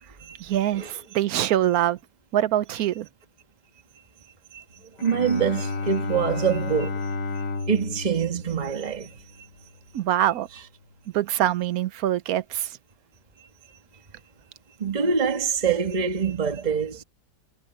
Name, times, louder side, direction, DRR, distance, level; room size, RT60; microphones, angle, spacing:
voice 1, 0.4-2.0 2.3-3.1 9.9-10.5 11.1-12.8, right 12 dB, 65° right, 1.1 m, -24 dB
Bowed string instrument, 5.0-9.5, left 3 dB, 55° left, 1.8 m, -32 dB
voice 2, 5.0-9.2 14.8-17.0, right 6 dB, 25° right, 1.6 m, -25 dB
omnidirectional pair, 1.9 m